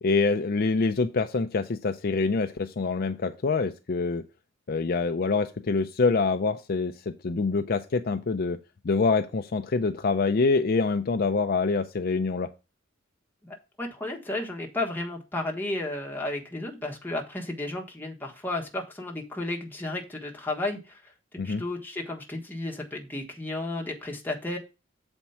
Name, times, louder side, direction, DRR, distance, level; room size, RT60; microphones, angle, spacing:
voice 1, 0.0-4.2 4.7-8.6 8.8-12.5 21.4-21.6, left 4 dB, 50° left, 8 dB, 0.5 m, -25 dB
voice 2, 13.4-21.1 21.4-24.6, left 2 dB, 10° left, 0 dB, 1.4 m, -33 dB
7.2 x 4.5 x 5.7 m, 0.28 s
head